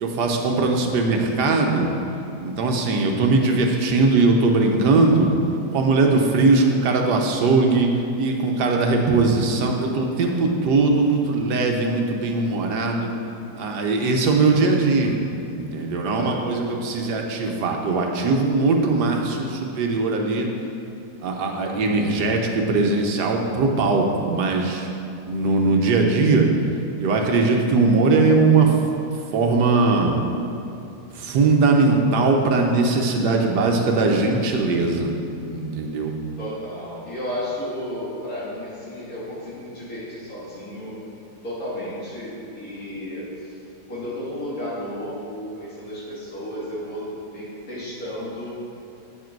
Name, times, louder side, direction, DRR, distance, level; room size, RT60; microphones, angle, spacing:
voice 1, 0.0-1.9 2.4-5.3 5.7-7.9 8.2-13.1 13.6-15.2 15.5-20.5 21.2-24.9 25.3-26.5 27.0-28.8 29.3-30.2 31.1-35.2 35.5-36.1, right 3 dB, 85° right, 2 dB, 1.6 m, -20 dB
voice 2, 16.1-16.4 25.3-25.4 36.4-41.0 41.4-43.6 43.9-48.6, left 1 dB, 60° left, -8 dB, 3.1 m, -33 dB
9.1 x 7.5 x 4.6 m, 2.7 s
omnidirectional pair, 1.7 m